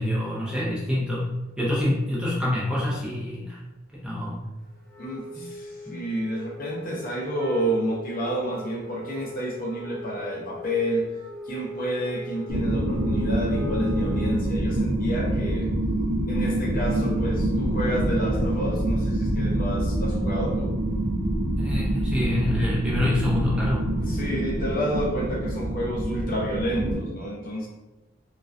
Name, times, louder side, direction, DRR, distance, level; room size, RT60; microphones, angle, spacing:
voice 1, 0.0-3.6 3.9-4.4 5.4-5.5 5.9-6.0 21.6-24.0, left 1 dB, 5° right, -7 dB, 0.4 m, -27 dB
Wind instrument woodwind instrument, 4.8-14.6, left 1 dB, 15° left, 0.9 m, -41 dB
voice 2, 5.0-11.0 11.5-15.7 16.3-20.7 24.0-27.7, equal, 45° left, -3 dB, 0.6 m, -29 dB
sound 1, 12.5-26.9, right 1 dB, 70° right, 0.6 m, -26 dB
2.3 x 2.2 x 2.4 m, 1.0 s
head